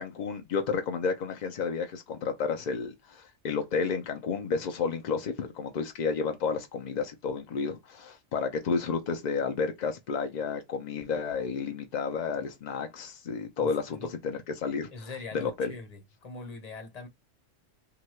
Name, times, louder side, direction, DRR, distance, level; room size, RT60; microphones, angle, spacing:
voice 1, 0.0-15.7, left 5 dB, 70° left, 0.4 m, -31 dB
voice 2, 13.6-14.1 14.9-17.1, left 4 dB, 40° left, 0.7 m, -42 dB
2.9 x 2.7 x 3.1 m
omnidirectional pair, 1.3 m